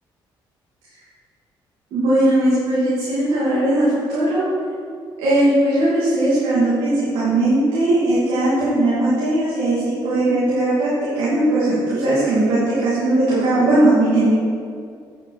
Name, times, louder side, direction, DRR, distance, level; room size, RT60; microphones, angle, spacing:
voice 1, 1.9-4.4 5.2-14.4, right 1 dB, 85° right, -9 dB, 2.6 m, -18 dB
8.4 x 7.9 x 4.8 m, 2.2 s
cardioid pair, 85°, 9 cm